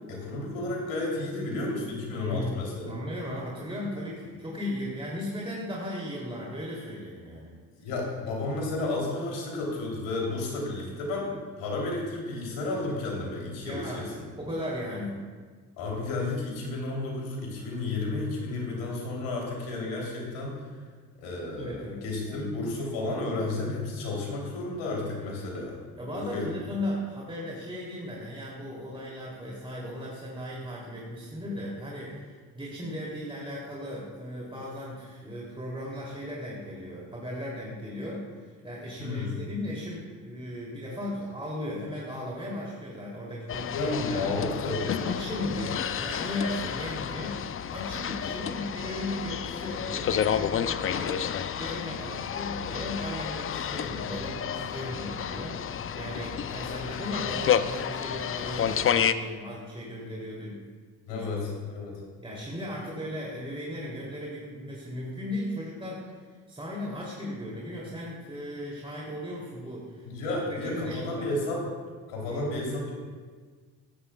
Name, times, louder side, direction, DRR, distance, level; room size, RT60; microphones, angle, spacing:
voice 1, 0.1-2.9 7.7-11.3 11.6-14.1 15.8-20.6 21.2-25.7 26.1-26.6 39.0-39.3 43.7-45.1 61.1-62.0 70.0-71.6 72.1-73.1, left 2 dB, 75° left, -2 dB, 3.3 m, -32 dB
voice 2, 2.1-2.6 2.8-7.5 13.6-14.1 14.4-15.2 21.5-22.5 26.0-44.4 45.0-47.4 47.7-60.6 61.1-61.5 62.2-70.1 70.4-71.3 72.2-72.5, left 1 dB, 10° right, -5 dB, 2.9 m, -36 dB
sound 1, 43.5-59.1, left 9 dB, 30° left, 0.5 m, -30 dB
15.0 x 11.0 x 2.3 m, 1.5 s
hypercardioid pair, 50°, 45 cm